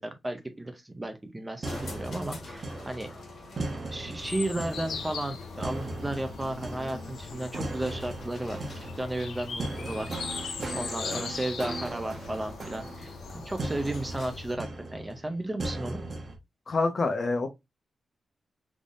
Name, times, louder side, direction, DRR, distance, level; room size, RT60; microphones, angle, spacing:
voice 1, 0.0-3.1 3.9-8.6 9.0-16.0, right 1 dB, 15° right, 0.6 m, -34 dB
sound 1, 1.6-14.6, left 2 dB, 60° left, 1.5 m, -47 dB
sound 2, 1.6-16.4, right 2 dB, 40° right, 0.9 m, -39 dB
sound 3, 4.2-14.6, left 5 dB, 80° left, 0.7 m, -40 dB
voice 2, 16.7-17.5, left 3 dB, 40° left, 0.8 m, -27 dB
3.8 x 3.5 x 2.5 m
wide cardioid pair, 165°, 0 cm